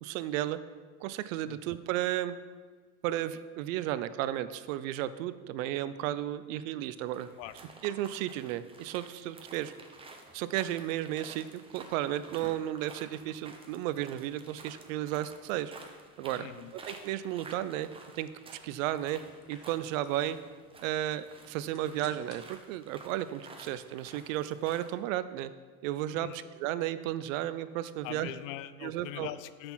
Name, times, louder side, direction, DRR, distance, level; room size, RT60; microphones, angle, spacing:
voice 1, 0.0-0.6 1.0-2.4 3.0-7.3 7.8-9.7 10.3-15.7 16.2-16.5 16.9-17.9 18.2-18.3 18.6-19.2 19.5-20.4 20.8-25.5 25.8-26.3 26.6-28.3 28.8-29.3, right 13 dB, 60° right, 14 dB, 0.6 m, -33 dB
sound 1, 7.1-24.9, right 3 dB, 10° right, 0.8 m, -52 dB
voice 2, 16.4-16.8 26.1-26.5 28.0-29.7, left 13 dB, 60° left, 14 dB, 0.6 m, -42 dB
sound 2, 19.2-24.3, left 6 dB, 85° left, 1.2 m, -61 dB
6.8 x 6.0 x 5.7 m, 1.5 s
supercardioid pair, 120°, 45 cm